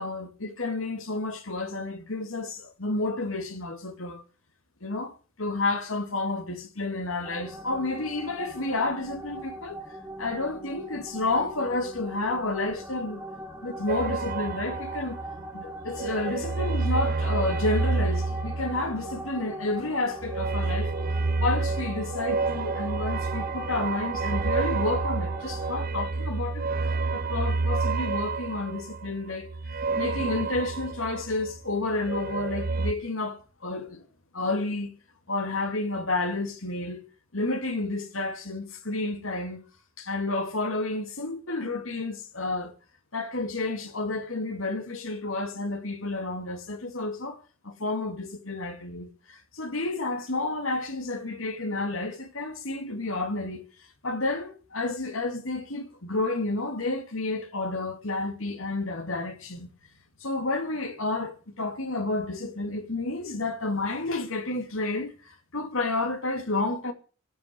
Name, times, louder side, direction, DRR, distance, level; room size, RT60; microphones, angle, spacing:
voice 1, 0.0-4.2 4.8-9.8 10.2-13.2 13.6-15.2 15.5-20.9 21.4-26.6 27.1-29.5 30.0-34.0 34.3-34.9 35.3-37.0 37.3-39.6 40.0-42.7 43.1-47.4 47.6-53.6 54.0-59.7 60.2-66.9, left 2 dB, 70° left, 2.6 m, -30 dB
sound 1, 7.2-25.9, right 2 dB, 10° right, 2.6 m, -40 dB
sound 2, 13.9-15.5 15.8-19.4 20.2-31.6 31.9-32.9, right 3 dB, 45° right, 0.8 m, -29 dB
15.5 x 8.6 x 10.0 m
head